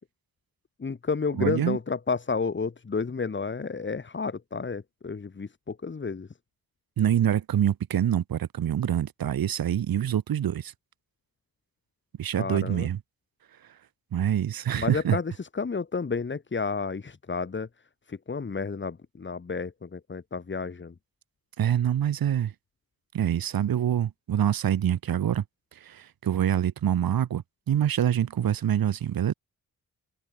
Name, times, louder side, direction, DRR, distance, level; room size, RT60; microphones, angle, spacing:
voice 1, 0.8-6.3 12.4-12.9 14.8-17.7 18.1-20.9, left 4 dB, 30° left, 4.8 m, -31 dB
voice 2, 1.4-1.8 7.0-10.7 12.2-13.0 14.1-15.2 21.6-22.5 23.1-25.4 25.7-29.3, right 10 dB, 80° right, 3.8 m, -25 dB
open air
wide cardioid pair, 130°, 35 cm